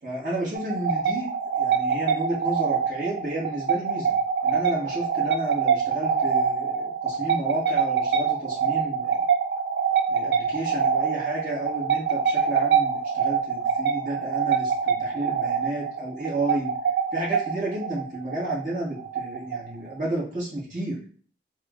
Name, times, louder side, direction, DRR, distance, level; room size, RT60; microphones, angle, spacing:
voice 1, 0.0-1.3 1.6-4.1 4.4-9.2 10.1-16.7 17.1-21.0, right 1 dB, 45° right, -7 dB, 1.5 m, -31 dB
sound 1, 0.6-19.9, right 6 dB, 65° right, 0.4 m, -25 dB
3.7 x 2.4 x 2.4 m, 0.43 s
head